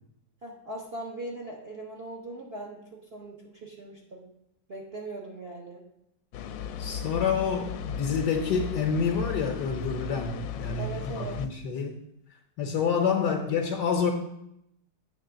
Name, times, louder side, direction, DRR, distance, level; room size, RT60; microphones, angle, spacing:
voice 1, 0.4-4.2 4.7-5.8 10.7-11.4 13.1-13.5, right 1 dB, 45° right, -1 dB, 0.9 m, -40 dB
sound 1, 6.3-11.5, left 8 dB, 90° left, 1.3 m, -36 dB
voice 2, 6.8-12.0 12.6-14.1, left 6 dB, 70° left, 3 dB, 1.3 m, -28 dB
8.6 x 3.3 x 6.7 m, 0.79 s
omnidirectional pair, 2.0 m